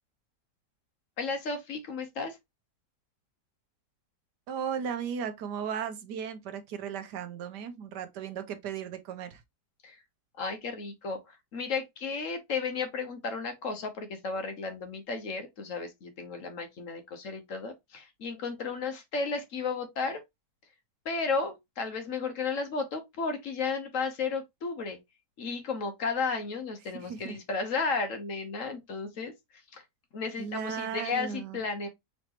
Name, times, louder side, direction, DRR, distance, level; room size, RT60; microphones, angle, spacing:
voice 1, 1.2-2.4 9.8-10.0 10.4-20.2 21.0-25.0 25.4-29.3 29.7-29.8 30.1-31.9, left 4 dB, 55° left, 1.3 m, -33 dB
voice 2, 4.5-9.4 27.0-27.4 30.4-31.6, right 7 dB, 80° right, 1.4 m, -36 dB
4.3 x 3.9 x 2.9 m
omnidirectional pair, 1.8 m